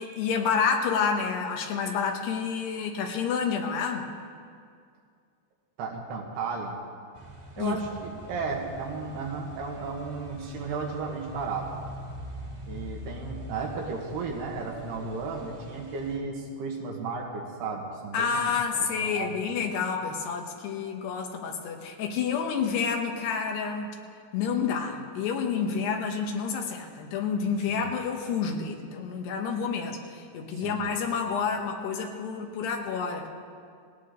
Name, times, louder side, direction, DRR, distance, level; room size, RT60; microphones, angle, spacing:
voice 1, 0.0-4.1 7.6-7.8 18.1-24.0 24.3-33.3, left 6 dB, 75° left, 3 dB, 3.3 m, -29 dB
voice 2, 5.8-6.7 7.6-11.7 12.7-19.3 27.7-27.9 30.5-30.8, right 4 dB, 75° right, 0 dB, 3.5 m, -34 dB
sound 1, 7.1-16.2, equal, 20° right, 1.0 m, -43 dB
19.5 x 18.0 x 3.8 m, 2.2 s
omnidirectional pair, 4.9 m